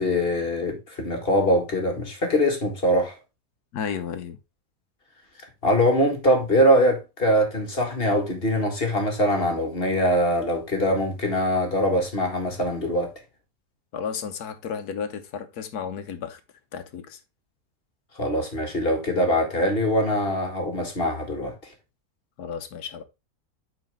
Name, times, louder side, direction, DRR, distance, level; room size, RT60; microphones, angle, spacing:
voice 1, 0.0-3.2 5.6-13.1 18.2-21.5, equal, 35° left, 1.8 m, -23 dB
voice 2, 3.7-4.4 13.9-16.4 16.7-17.2 22.4-23.0, left 7 dB, 75° left, 1.4 m, -33 dB
8.8 x 4.2 x 3.6 m
omnidirectional pair, 1.7 m